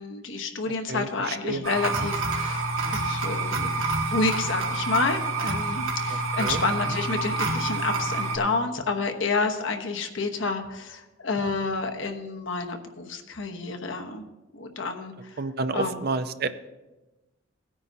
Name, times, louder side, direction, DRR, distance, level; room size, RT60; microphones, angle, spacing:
voice 1, 0.0-3.7 4.1-14.3 14.5-15.4 15.7-16.0, left 3 dB, 65° left, 5 dB, 1.1 m, -29 dB
voice 2, 0.9-1.6 2.0-2.1 6.4-6.6 6.9-7.0 15.4-16.5, right 3 dB, 50° right, 11 dB, 0.5 m, -30 dB
sound 1, 1.6-8.4, right 3 dB, 85° right, 2.0 m, -28 dB
18.0 x 9.6 x 2.7 m, 1.1 s
head